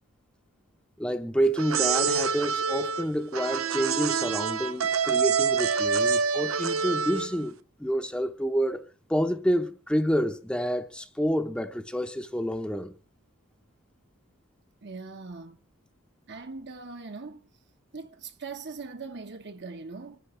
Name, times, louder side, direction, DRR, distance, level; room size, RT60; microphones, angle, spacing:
voice 1, 1.0-7.5 7.8-8.8 9.1-12.9, equal, 5° left, 0.8 m, -28 dB
sound 1, 1.6-7.5, right 6 dB, 80° right, 0.8 m, -26 dB
voice 2, 14.8-15.6 16.3-17.5 17.9-20.2, right 4 dB, 55° right, 1.2 m, -40 dB
26.5 x 10.0 x 3.3 m
head